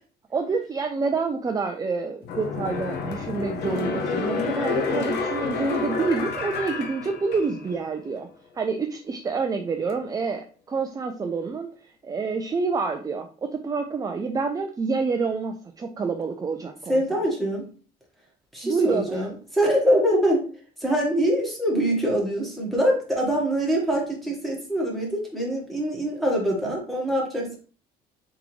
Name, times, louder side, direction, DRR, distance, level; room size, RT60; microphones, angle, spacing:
voice 1, 0.3-8.3 8.6-10.4 10.7-11.7 12.0-17.0 18.6-19.3, right 4 dB, 20° right, 5 dB, 0.4 m, -27 dB
sound 1, 2.2-7.8 8.2-8.3, left 4 dB, 80° left, 0.8 m, -29 dB
voice 2, 16.9-17.7 18.5-20.5 20.8-27.6, equal, ahead, -2 dB, 1.6 m, -24 dB
3.7 x 3.6 x 3.1 m, 0.40 s
cardioid pair, 110°, 17 cm